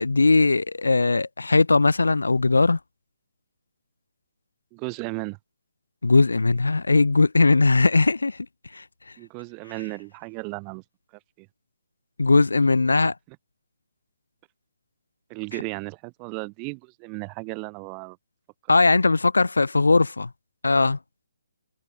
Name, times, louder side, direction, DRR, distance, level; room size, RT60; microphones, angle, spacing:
voice 1, 0.0-2.8 6.0-8.5 8.7-8.8 12.2-13.1 18.7-20.3 20.6-21.0, left 3 dB, 80° left, 0.5 m, -19 dB
voice 2, 4.7-5.4 9.2-10.8 11.4-11.5 13.3-13.4 15.3-18.2, right 37 dB, 25° right, 3.1 m, -35 dB
figure-of-eight pair, 140°, 0 cm